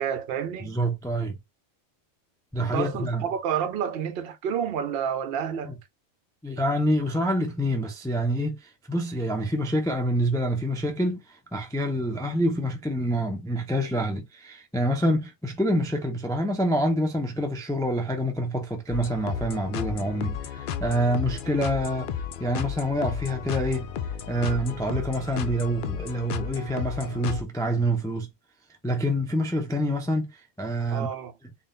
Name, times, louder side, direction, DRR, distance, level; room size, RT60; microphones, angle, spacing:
voice 1, 0.0-0.8 2.6-5.8 30.9-31.3, right 8 dB, 60° right, 0.7 m, -29 dB
voice 2, 0.6-1.4 2.5-3.2 6.4-11.2 11.5-22.1 22.4-23.9 24.3-28.3 28.8-30.3 30.6-31.1, equal, 5° left, 0.5 m, -26 dB
sound 1, 18.9-27.4, left 8 dB, 60° left, 0.5 m, -33 dB
3.8 x 2.3 x 3.9 m
omnidirectional pair, 1.3 m